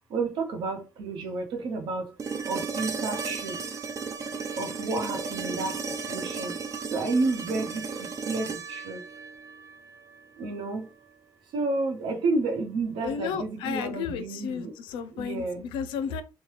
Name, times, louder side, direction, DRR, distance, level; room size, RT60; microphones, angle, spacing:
voice 1, 0.1-2.1 2.4-3.6 4.6-5.8 6.1-6.5 6.9-9.0 10.4-10.9 11.5-14.7 15.1-15.6, right 3 dB, 75° right, 0.8 m, -30 dB
sound 1, 2.2-10.3 12.4-12.5, right 5 dB, 40° right, 0.5 m, -35 dB
voice 2, 13.0-16.2, left 7 dB, 85° left, 0.4 m, -33 dB
3.1 x 2.1 x 3.1 m
supercardioid pair, 75°, 8 cm